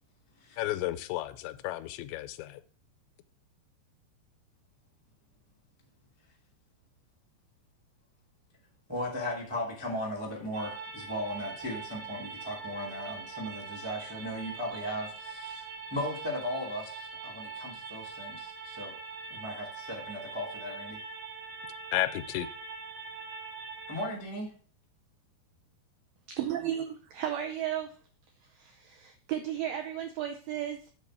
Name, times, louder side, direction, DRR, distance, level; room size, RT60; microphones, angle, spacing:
voice 1, 0.6-2.6 21.9-22.5, left 15 dB, 90° left, 11 dB, 2.8 m, -32 dB
voice 2, 8.9-15.6 15.9-18.9 19.3-21.0 23.9-24.5, left 1 dB, 15° right, -2 dB, 0.4 m, -37 dB
sound 1, 10.5-24.1, right 5 dB, 70° right, 2.9 m, -42 dB
voice 3, 26.4-28.0 28.4-30.9, right 10 dB, 85° right, 5 dB, 2.0 m, -34 dB
8.0 x 3.9 x 6.2 m, 0.41 s
omnidirectional pair, 4.9 m